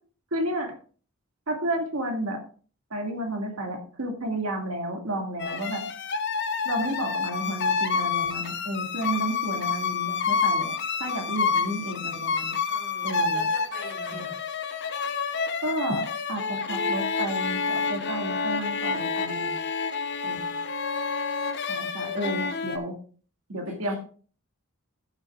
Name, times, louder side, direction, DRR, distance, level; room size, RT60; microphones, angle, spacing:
voice 1, 0.3-0.7 1.5-2.4 2.9-5.8 6.6-10.7 11.0-12.5 13.0-13.4 14.1-14.3 15.6-19.6 20.2-20.5 21.7-22.9 23.5-23.9, right 1 dB, 85° right, 2 dB, 2.2 m, -31 dB
sound 1, 5.4-22.8, left 5 dB, 55° left, 0.8 m, -28 dB
voice 2, 12.6-14.4 20.3-20.7 22.0-22.4 23.7-23.9, right 1 dB, 60° right, -2 dB, 3.6 m, -45 dB
13.5 x 8.1 x 2.5 m, 0.40 s
head